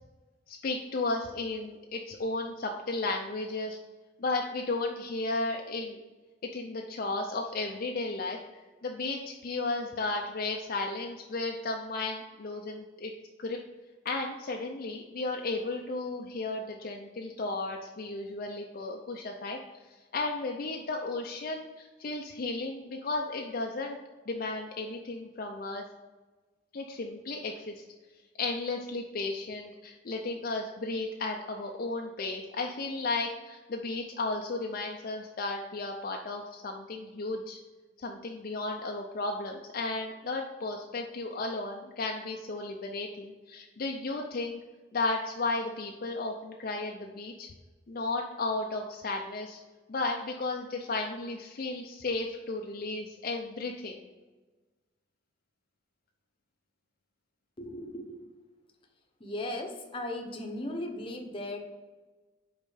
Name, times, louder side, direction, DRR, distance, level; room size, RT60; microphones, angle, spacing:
voice 1, 0.5-3.8 4.2-6.0 6.5-13.1 13.4-13.6 14.0-19.6 20.1-24.0 24.3-25.8 26.7-27.8 28.4-37.6 38.0-44.6 44.9-47.5 47.9-49.6 49.9-54.0, left 3 dB, 50° left, 2 dB, 0.5 m, -34 dB
voice 2, 57.6-58.2 59.2-61.6, left 1 dB, 30° left, 2 dB, 0.9 m, -37 dB
5.3 x 4.4 x 4.9 m, 1.3 s
head